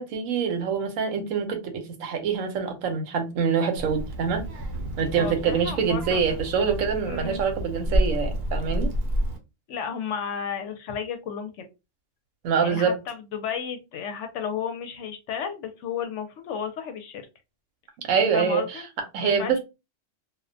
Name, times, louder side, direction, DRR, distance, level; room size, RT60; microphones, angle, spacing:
voice 1, 0.0-4.5 5.0-8.9 12.4-12.9 18.1-18.8 19.1-19.6, right 6 dB, 85° right, 1.0 m, -25 dB
Child speech kid speaking, 3.8-9.4, equal, 60° right, 0.8 m, -29 dB
voice 2, 5.2-6.4 7.1-7.4 9.7-11.7 12.6-17.3 18.3-18.9 19.2-19.6, left 7 dB, 70° left, 0.8 m, -33 dB
2.3 x 2.1 x 2.5 m
omnidirectional pair, 1.3 m